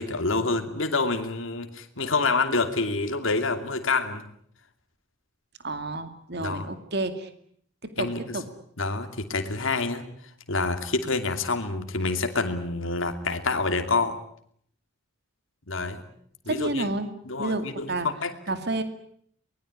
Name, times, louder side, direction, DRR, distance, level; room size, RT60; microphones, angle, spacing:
voice 1, 0.0-4.2 6.4-6.7 8.0-8.4 8.8-10.1 10.5-14.2 15.7-16.1 16.4-16.9 17.2-18.4, left 3 dB, 70° left, 7 dB, 2.7 m, -27 dB
voice 2, 5.6-7.3 7.8-8.4 16.5-17.1 17.4-18.1 18.5-18.8, right 2 dB, 50° right, 9 dB, 2.3 m, -30 dB
23.5 x 21.0 x 9.6 m, 0.65 s
head